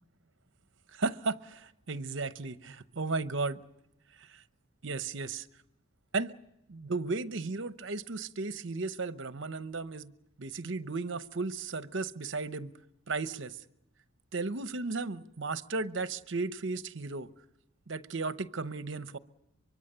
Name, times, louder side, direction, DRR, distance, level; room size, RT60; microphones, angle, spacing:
voice 1, 0.9-3.6 4.2-4.4 4.8-5.5 6.1-6.3 6.7-10.1 10.4-12.7 13.1-13.6 14.3-17.3 17.9-19.2, right 3 dB, 60° right, 0.9 m, -35 dB
24.0 x 23.5 x 6.8 m
head